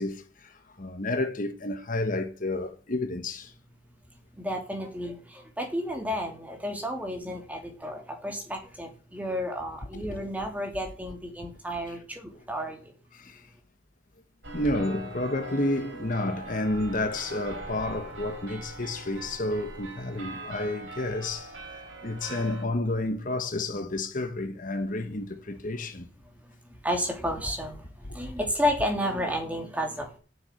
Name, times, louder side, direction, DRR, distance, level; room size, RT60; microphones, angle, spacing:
voice 1, 0.0-3.5 9.9-10.2 11.9-12.0 13.1-13.5 14.5-26.1 28.0-28.2, left 2 dB, 45° left, 1.3 m, -31 dB
voice 2, 4.4-12.9 26.6-30.2, equal, 10° right, 2.8 m, -32 dB
sound 1, 14.4-22.6, right 2 dB, 80° right, 4.0 m, -42 dB
9.8 x 7.3 x 8.2 m
head